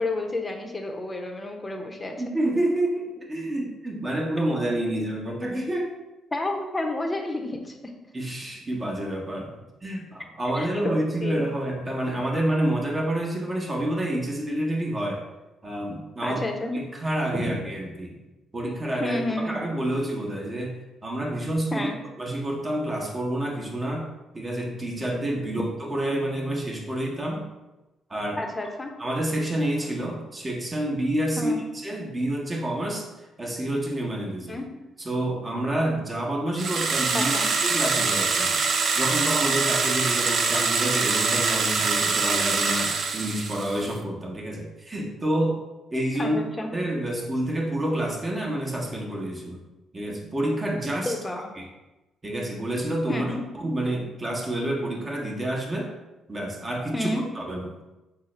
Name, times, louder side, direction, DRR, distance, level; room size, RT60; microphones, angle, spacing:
voice 1, 0.0-2.2 6.3-7.8 10.5-11.4 16.2-16.8 17.3-17.6 19.0-19.7 21.7-22.0 28.4-28.9 31.4-31.6 34.5-34.7 37.1-37.5 46.2-46.7 51.0-51.5 53.1-53.4 56.9-57.2, left 2 dB, 20° left, 3 dB, 0.7 m, -30 dB
voice 2, 2.2-5.9 8.1-15.2 15.6-16.4 16.7-18.2 18.5-20.8 21.0-21.9 22.2-24.1 24.3-27.4 28.1-28.4 29.0-31.6 31.8-33.1 33.4-34.6 35.0-38.6 38.9-45.6 45.9-46.4 46.7-49.6 49.9-51.1 51.6-51.7 52.2-53.3 53.6-55.9 56.3-57.1 57.3-57.7, right 1 dB, 30° right, -1 dB, 0.9 m, -28 dB
sound 1, 36.6-43.9, right 4 dB, 50° right, 0.4 m, -24 dB
5.4 x 2.0 x 3.2 m, 1.0 s
figure-of-eight pair, 45°, 0 cm